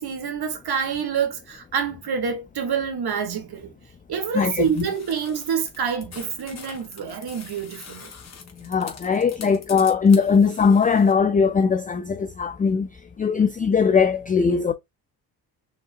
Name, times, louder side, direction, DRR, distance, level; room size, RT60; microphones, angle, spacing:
voice 1, 0.0-3.7 4.1-8.1, right 7 dB, 65° right, 1.6 m, -27 dB
voice 2, 4.3-4.9 8.6-12.9 13.2-14.7, left 5 dB, 20° left, 0.3 m, -20 dB
sound 1, 4.5-11.1, left 5 dB, 40° left, 1.6 m, -44 dB
5.2 x 3.7 x 2.5 m
cardioid pair, 85°, 41 cm